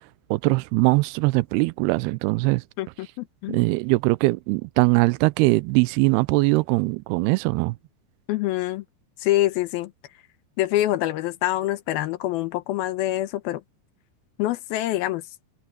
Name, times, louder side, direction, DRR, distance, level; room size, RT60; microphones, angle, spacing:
voice 1, 0.3-2.6 3.5-7.8, right 24 dB, 85° right, 2.5 m, -21 dB
voice 2, 2.8-3.6 8.3-8.8 9.2-9.9 10.6-13.6 14.4-15.2, left 15 dB, 80° left, 2.5 m, -25 dB
omnidirectional pair, 4.6 m